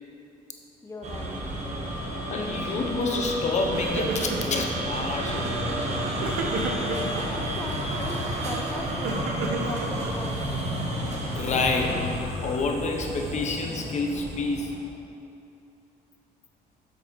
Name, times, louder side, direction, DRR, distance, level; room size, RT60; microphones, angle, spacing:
voice 1, 0.8-2.2 7.1-9.2 9.6-10.7, left 2 dB, 15° left, 0 dB, 0.7 m, -39 dB
sound 1, 1.0-14.9, right 1 dB, 40° right, 1.5 m, -31 dB
voice 2, 2.3-6.0 10.8-14.7, left 3 dB, 45° left, 2 dB, 0.9 m, -28 dB
sound 2, 2.4-13.3, left 6 dB, 70° left, 0.7 m, -40 dB
Crying sobbing, 3.1-3.4 3.6-4.7 5.2-5.6 6.2-7.2 8.1-10.4, right 4 dB, 80° right, 0.9 m, -33 dB
8.1 x 6.2 x 4.6 m, 2.6 s
cardioid pair, 110°, 17 cm